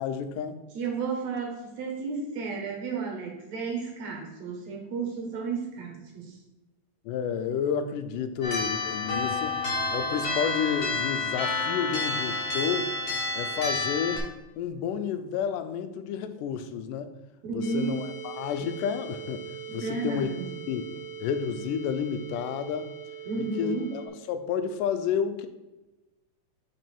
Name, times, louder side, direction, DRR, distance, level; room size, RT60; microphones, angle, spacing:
voice 1, 0.0-0.6 7.1-9.5 9.9-12.9 13.3-14.2 14.6-17.1 17.5-20.3 20.7-20.9 21.2-22.9 23.4-24.0 24.3-25.5, left 7 dB, 85° left, 9 dB, 2.2 m, -30 dB
voice 2, 0.7-6.4 17.4-18.0 19.7-20.6 23.3-23.9, right 4 dB, 65° right, 1 dB, 2.4 m, -32 dB
sound 1, 8.4-14.2, left 3 dB, 45° left, 3.0 m, -29 dB
sound 2, 17.6-24.1, right 6 dB, 65° left, 2.2 m, -41 dB
7.9 x 5.4 x 4.4 m, 1.1 s
omnidirectional pair, 3.7 m